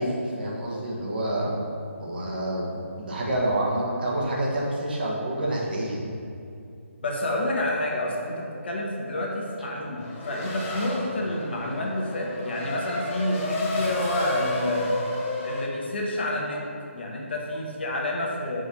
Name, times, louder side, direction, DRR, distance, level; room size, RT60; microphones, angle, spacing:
voice 1, 0.0-1.6 2.0-2.7 3.0-6.0, right 1 dB, 45° right, -3 dB, 1.3 m, -27 dB
voice 2, 7.0-15.0 15.4-16.6 16.9-18.7, left 1 dB, 50° left, -1 dB, 1.2 m, -29 dB
Race car auto racing / Accelerating revving vroom, 10.0-15.7, left 2 dB, 15° left, 0.8 m, -31 dB
5.1 x 4.6 x 5.4 m, 2.5 s
figure-of-eight pair, 150°, 7 cm